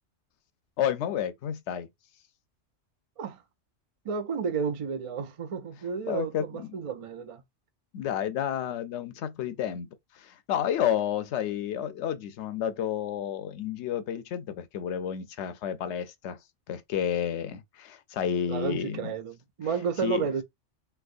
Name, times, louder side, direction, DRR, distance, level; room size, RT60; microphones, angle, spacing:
voice 1, 0.8-1.9 6.1-6.7 7.9-9.9 10.2-16.4 16.7-19.1 20.0-20.3, left 9 dB, 75° left, 0.8 m, -30 dB
voice 2, 4.0-7.4 18.5-20.4, right 6 dB, 65° right, 0.3 m, -32 dB
3.3 x 2.9 x 2.4 m
omnidirectional pair, 1.2 m